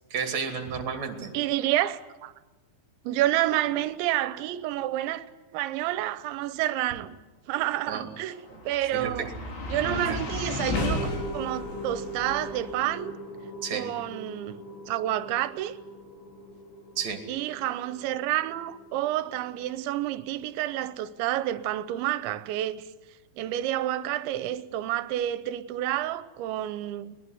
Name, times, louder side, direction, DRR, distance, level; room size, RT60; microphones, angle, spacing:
voice 1, 0.1-1.3 7.9-8.1 8.9-9.3 9.8-10.2 13.6-13.9 17.0-17.2, right 6 dB, 45° right, 3.2 m, -32 dB
voice 2, 1.3-2.3 3.0-5.3 5.5-7.2 7.5-9.3 9.7-13.1 13.7-15.7 17.3-22.9 23.4-27.2, right 13 dB, 80° right, 3.1 m, -29 dB
sound 1, 8.2-20.5, left 2 dB, 85° left, 6.7 m, -36 dB
21.0 x 21.0 x 8.0 m
omnidirectional pair, 5.3 m